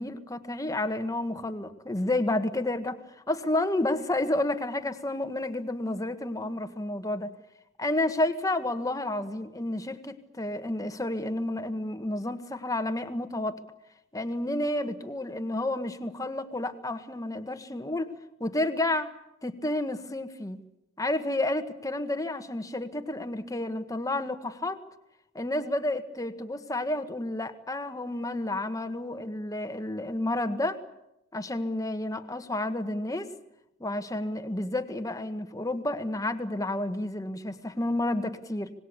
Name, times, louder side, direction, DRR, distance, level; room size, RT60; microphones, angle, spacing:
voice 1, 0.0-3.0 3.3-7.3 7.8-13.6 14.1-18.1 18.4-19.1 19.4-20.6 21.0-24.8 25.3-30.8 31.3-33.3 33.8-38.7, left 1 dB, 20° left, 8 dB, 1.6 m, -30 dB
26.0 x 20.0 x 8.5 m, 0.85 s
head